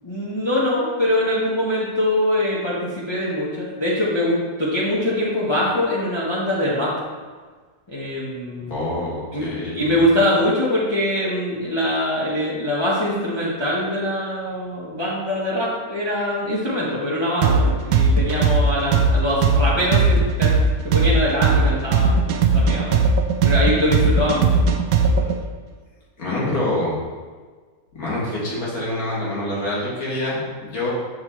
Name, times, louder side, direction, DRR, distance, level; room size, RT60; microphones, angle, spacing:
voice 1, 0.0-6.9 7.9-8.7 9.3-9.5 9.7-20.5 20.8-23.0 23.4-24.6 25.1-25.3, left 1 dB, 25° left, -7 dB, 0.8 m, -23 dB
voice 2, 8.7-9.9 26.2-26.9 27.9-30.9, left 1 dB, 90° left, -7 dB, 2.4 m, -26 dB
sound 1, 17.4-25.3, right 5 dB, 80° right, 1.0 m, -17 dB
6.3 x 6.0 x 3.0 m, 1.5 s
omnidirectional pair, 1.5 m